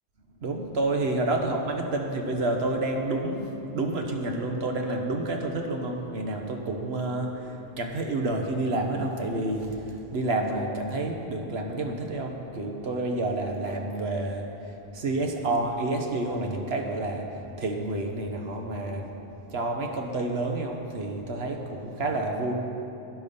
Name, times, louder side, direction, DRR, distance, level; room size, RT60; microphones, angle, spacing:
voice 1, 0.4-14.4 14.9-19.1 19.5-22.5, right 2 dB, 85° right, 2 dB, 1.4 m, -29 dB
12.0 x 10.5 x 5.4 m, 2.9 s
omnidirectional pair, 1.0 m